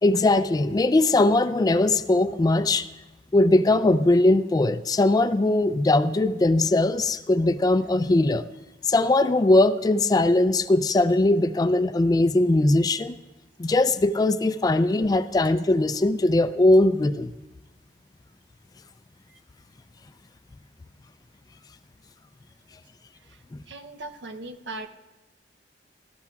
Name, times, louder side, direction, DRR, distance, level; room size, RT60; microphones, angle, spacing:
voice 1, 0.0-2.9 3.3-8.4 8.9-13.2 13.6-17.3, left 2 dB, 20° left, 12 dB, 0.3 m, -20 dB
voice 2, 23.7-24.9, right 2 dB, 85° right, 8 dB, 0.7 m, -39 dB
18.5 x 13.0 x 2.4 m, 1.1 s
head